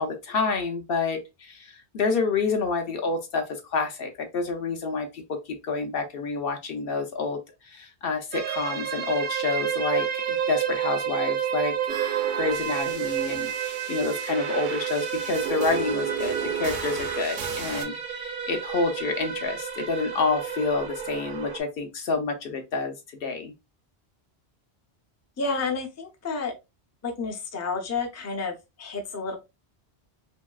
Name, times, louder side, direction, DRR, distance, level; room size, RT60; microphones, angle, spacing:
voice 1, 0.0-22.9 23.2-23.5, left 4 dB, 65° left, 0.7 m, -28 dB
sound 1, 8.3-21.6, right 9 dB, 55° right, 0.6 m, -30 dB
sound 2, 11.9-17.8, right 8 dB, 80° right, 0.9 m, -34 dB
voice 2, 25.4-26.5 27.0-29.3, left 4 dB, 25° left, 0.3 m, -30 dB
3.0 x 2.7 x 2.2 m
omnidirectional pair, 1.2 m